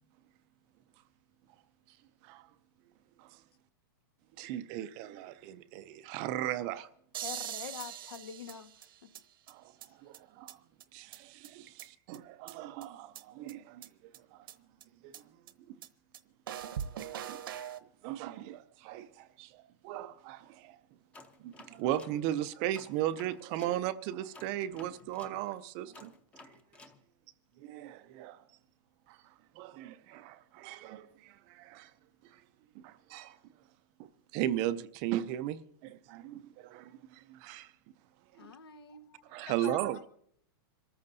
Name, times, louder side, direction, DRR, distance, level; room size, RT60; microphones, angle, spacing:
voice 1, 4.4-6.9 9.5-10.6 10.9-13.9 14.3-14.5 15.0-15.1 15.7-15.8 17.3-17.4 18.0-20.8 21.4-26.1 26.4-26.5 27.6-28.4 29.1-29.2 29.5-31.9 32.2-32.4 32.7-33.4 34.0-37.7 38.3-38.5 39.3-40.0, right 12 dB, 30° right, 0.4 m, -37 dB
sound 1, 7.1-9.2 9.5-9.6 9.8-9.9 10.1-10.2 10.5-10.6 10.8-10.9 11.1-11.2 11.4-12.2 12.5-12.6 12.8-12.9 13.2-13.3 13.5-13.6 13.8-13.9 14.1-14.2 14.5-14.6 14.8-14.9 15.1-15.2 15.5-15.6 15.8-15.9 16.1-16.2 16.5-17.8, right 10 dB, 65° right, 0.9 m, -41 dB
voice 2, 7.2-8.7 9.0-9.1 9.9-10.0 38.3-39.1, left 8 dB, 85° left, 1.5 m, -45 dB
sound 2, 21.1-23.8 24.3-27.0, left 2 dB, 10° left, 0.7 m, -54 dB
voice 3, 38.9-40.1, left 8 dB, 45° left, 1.3 m, -48 dB
26.5 x 14.0 x 2.7 m
supercardioid pair, 170°, 12 cm